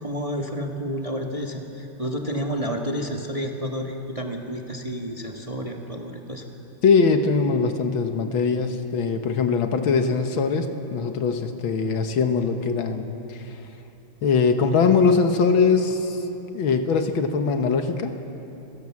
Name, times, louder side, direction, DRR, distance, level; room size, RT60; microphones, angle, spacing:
voice 1, 0.0-6.4, equal, 20° right, 1 dB, 1.3 m, -30 dB
voice 2, 6.8-13.5 14.2-16.2 16.5-18.1, left 5 dB, 75° left, 7 dB, 2.0 m, -21 dB
26.0 x 17.5 x 7.3 m, 3.0 s
omnidirectional pair, 2.3 m